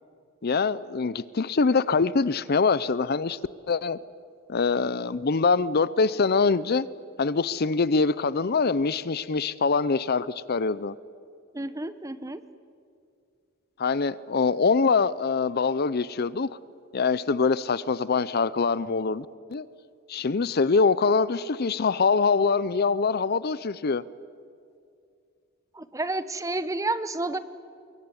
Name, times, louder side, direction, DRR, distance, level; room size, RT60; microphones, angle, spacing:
voice 1, 0.4-3.4 3.7-4.0 4.5-6.9 7.2-10.9 13.8-16.5 16.9-19.7 20.1-24.0, left 4 dB, 50° left, 18 dB, 0.6 m, -24 dB
voice 2, 11.5-12.4 25.7-27.4, right 2 dB, 15° right, 13 dB, 1.0 m, -30 dB
24.5 x 22.5 x 9.8 m, 2.4 s
head